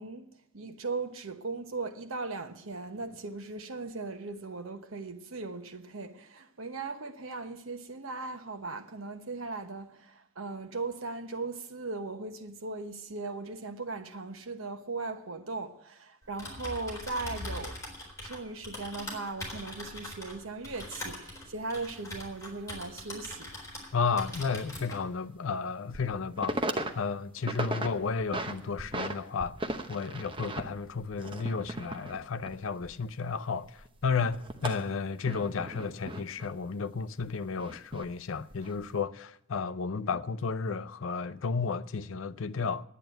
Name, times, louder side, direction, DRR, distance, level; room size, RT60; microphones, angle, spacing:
voice 1, 0.0-17.8 18.2-23.5, right 3 dB, 90° right, 1.1 m, -38 dB
Typing, 16.2-23.9 24.2-25.0, left 1 dB, 15° left, 4.1 m, -42 dB
sound 1, 21.7-21.8 22.2-22.3 24.5-24.6 25.1-25.2 25.7-26.1 26.4-26.9 27.2-27.9 28.2-29.1 29.4-33.4 33.6-36.5 37.2-38.1 38.5-38.8, right 1 dB, 25° right, 0.9 m, -36 dB
voice 2, 23.9-26.6 27.0-29.6 29.9-42.8, left 5 dB, 80° left, 0.5 m, -32 dB
10.5 x 9.2 x 9.0 m
head